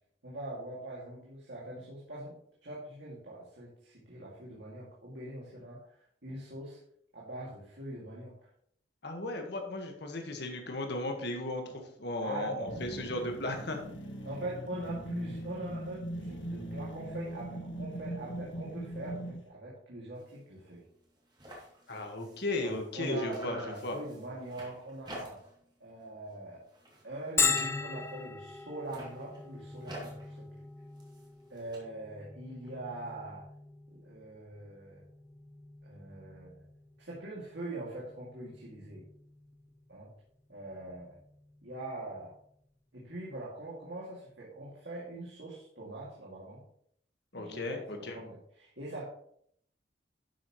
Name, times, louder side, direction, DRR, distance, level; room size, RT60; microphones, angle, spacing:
voice 1, 0.2-2.4 2.6-6.8 7.1-8.5 12.2-13.2 14.2-20.8 22.6-25.4 25.8-26.6 27.0-30.5 31.5-33.5 33.9-35.0 35.8-36.6 37.0-39.1 39.9-40.1 40.5-41.2 41.6-42.3 42.9-46.6 47.3-49.1, right 1 dB, 70° right, -5 dB, 2.5 m, -43 dB
voice 2, 9.0-13.8 21.9-24.0 47.3-48.2, left 1 dB, 65° left, 4 dB, 1.6 m, -35 dB
sound 1, 12.7-19.4, right 1 dB, 80° left, 1.5 m, -40 dB
sound 2, 20.1-20.4 20.7-20.8 21.0-23.0 23.3-25.7 26.0-26.4 26.7-28.2 28.7-31.8, right 1 dB, 25° right, 2.8 m, -50 dB
Bell, 27.4-42.8, left 5 dB, 15° left, 0.4 m, -39 dB
11.5 x 7.4 x 3.2 m, 0.66 s
head